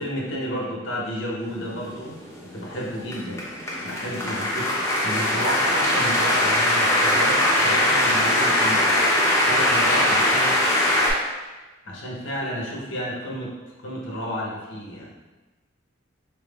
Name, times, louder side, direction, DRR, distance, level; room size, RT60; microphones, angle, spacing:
voice 1, 0.0-2.2 2.5-3.5 3.8-4.7 5.0-8.9 9.4-10.6 11.8-15.2, equal, 70° left, -2 dB, 0.8 m, -31 dB
sound 1, 1.8-11.1, left 1 dB, 15° left, 0.6 m, -21 dB
4.2 x 3.5 x 2.3 m, 1.2 s
head